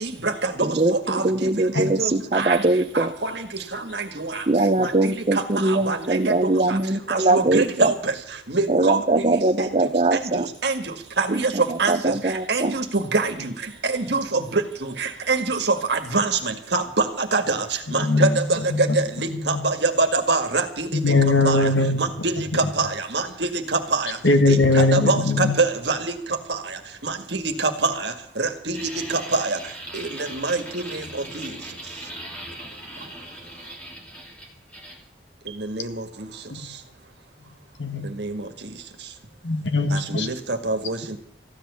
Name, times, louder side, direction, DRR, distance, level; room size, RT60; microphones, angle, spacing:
voice 1, 0.0-1.5 1.8-2.6 2.9-3.3 3.7-4.4 4.8-5.1 5.7-6.2 6.7-6.8 7.1-8.1 8.5-9.3 9.6-9.7 10.6-10.8 11.2-12.0 12.5-13.5 13.8-17.6 17.9-21.0 21.5-21.6 22.0-24.2 24.5-26.1 26.5-26.6 27.0-28.8 29.1-29.6 29.9-31.0 31.3-31.5 35.6-36.0 38.2-38.4 39.9-41.2, right 3 dB, 65° right, 6 dB, 1.9 m, -25 dB
voice 2, 0.6-3.1 4.5-7.9 8.7-10.5 11.3-12.8, right 2 dB, 35° right, 11 dB, 0.8 m, -22 dB
voice 3, 18.0-18.4 18.7-19.0 19.3-19.6 20.9-22.2 24.2-25.5 36.5-36.6 37.8-38.0 39.4-40.3, left 2 dB, 75° left, 7 dB, 1.8 m, -20 dB
sound 1, 28.7-35.0, right 1 dB, 5° left, 2.9 m, -39 dB
15.0 x 10.5 x 6.9 m, 0.67 s
head